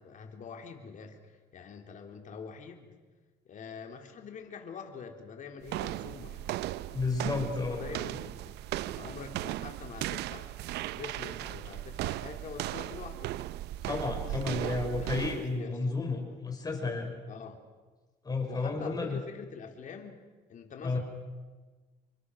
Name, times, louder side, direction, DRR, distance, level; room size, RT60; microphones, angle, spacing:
voice 1, 0.0-3.0 3.5-10.5 10.9-13.3 14.2-14.7 15.0-15.8 17.3-17.6 18.5-20.2 20.5-21.0, left 6 dB, 50° left, 4 dB, 3.7 m, -45 dB
sound 1, 5.6-15.6, right 15 dB, 80° right, 0.7 m, -37 dB
voice 2, 6.9-7.9 13.8-17.1 18.2-19.2 20.8-21.0, left 3 dB, 25° left, 3 dB, 5.9 m, -32 dB
28.5 x 24.0 x 6.5 m, 1.3 s
cardioid pair, 110°, 17 cm